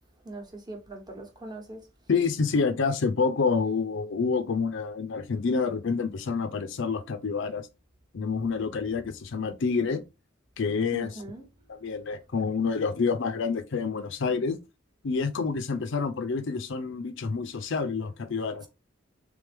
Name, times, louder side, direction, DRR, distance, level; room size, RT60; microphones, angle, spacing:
voice 1, 0.2-1.8 10.9-11.4, right 1 dB, 20° right, 1.0 m, -41 dB
voice 2, 2.1-7.7 8.1-10.0 10.6-11.1 11.7-14.6 15.0-18.7, left 5 dB, 65° left, 0.5 m, -28 dB
3.4 x 3.4 x 3.4 m
head